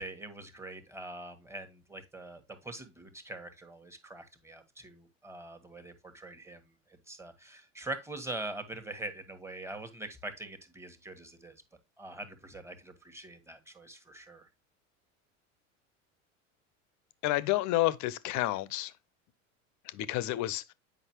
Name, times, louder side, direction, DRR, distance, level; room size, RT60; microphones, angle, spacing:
voice 1, 0.0-6.7 7.1-11.5 12.0-14.5, right 2 dB, 5° right, 1.4 m, -43 dB
voice 2, 17.2-18.9 19.9-20.7, left 16 dB, 45° left, 0.7 m, -30 dB
8.1 x 5.3 x 2.9 m
hypercardioid pair, 90°, 40 cm